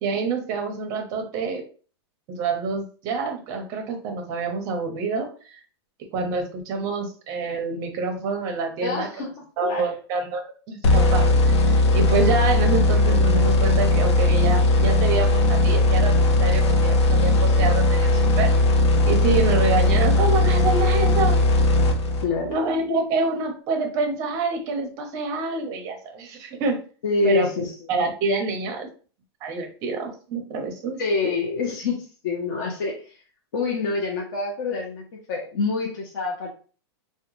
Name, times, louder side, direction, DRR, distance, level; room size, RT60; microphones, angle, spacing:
voice 1, 0.0-1.6 2.3-5.3 6.1-9.3 9.6-10.4 10.7-11.3 11.9-18.5 19.1-21.3 22.5-26.8 27.2-28.9 29.4-31.0, right 4 dB, 25° right, 3 dB, 0.6 m, -27 dB
voice 2, 8.8-9.3 9.6-9.9 19.3-19.4 22.2-22.5 27.0-27.7 31.0-33.0 33.5-36.5, left 4 dB, 50° left, -2 dB, 0.7 m, -26 dB
sound 1, 10.8-22.5, left 2 dB, 85° left, 0.6 m, -18 dB
3.5 x 2.2 x 3.0 m, 0.39 s
supercardioid pair, 175°, 14 cm